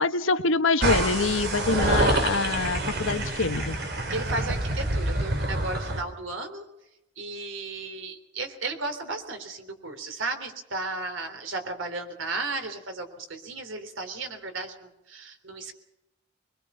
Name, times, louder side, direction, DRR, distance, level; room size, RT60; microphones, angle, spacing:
voice 1, 0.0-3.8, left 3 dB, 75° left, 9 dB, 1.3 m, -25 dB
sound 1, 0.8-6.0, right 1 dB, 60° right, 4.1 m, -27 dB
voice 2, 4.1-6.7 7.2-15.7, right 3 dB, 75° right, 7 dB, 3.5 m, -34 dB
24.0 x 22.0 x 5.7 m, 0.89 s
head